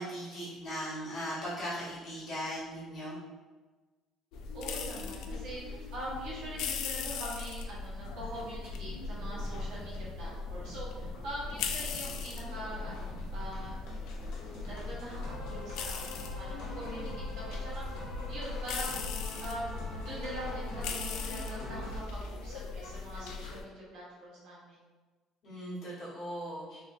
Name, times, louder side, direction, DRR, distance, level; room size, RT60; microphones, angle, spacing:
voice 1, 0.0-3.2 25.4-26.8, equal, 40° left, -10 dB, 1.5 m, -38 dB
sound 1, 4.3-23.6, left 4 dB, 65° left, 0.3 m, -39 dB
voice 2, 4.5-13.7 14.7-18.0 18.3-19.0 19.4-24.8, right 1 dB, 60° right, -6 dB, 1.1 m, -43 dB
sound 2, 8.2-22.0, equal, 85° left, 1.1 m, -45 dB
3.6 x 2.5 x 2.6 m, 1.3 s
cardioid pair, 180°, 0 cm